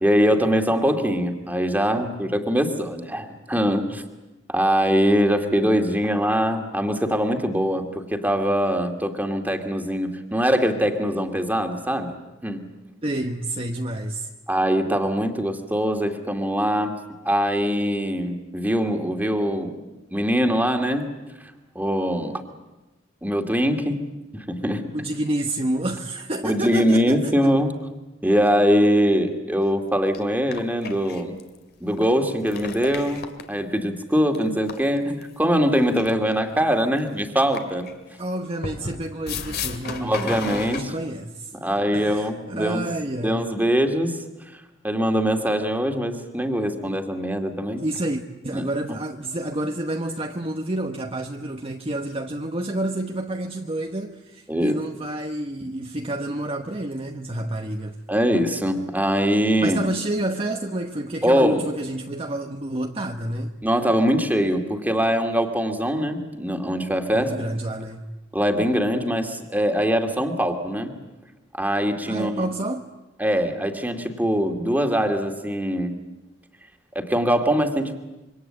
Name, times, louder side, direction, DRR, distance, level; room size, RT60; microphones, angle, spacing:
voice 1, 0.0-4.0 4.5-12.2 12.4-12.7 14.5-17.0 17.2-21.1 21.8-22.4 23.2-24.0 24.3-24.8 26.4-27.7 28.2-31.4 31.8-37.9 38.8-38.9 40.0-40.9 41.6-42.9 43.2-44.2 44.5-47.8 48.5-48.7 54.5-54.7 58.1-59.8 61.2-61.6 63.6-67.3 68.3-70.9 71.5-72.4 73.2-75.9 76.9-78.0, equal, 10° right, 2.3 m, -22 dB
voice 2, 13.0-14.3 24.9-27.5 38.2-43.4 47.8-58.0 59.6-63.5 67.1-68.1 72.1-72.9, right 1 dB, 30° right, 1.1 m, -29 dB
sound 1, 29.6-29.7 30.1-30.2 30.5-31.6 32.0-32.1 32.5-33.5 34.3-35.2 35.9-36.5 36.8-37.0 37.5-37.9 38.6-40.8, left 5 dB, 55° left, 2.3 m, -33 dB
26.5 x 24.0 x 8.8 m
head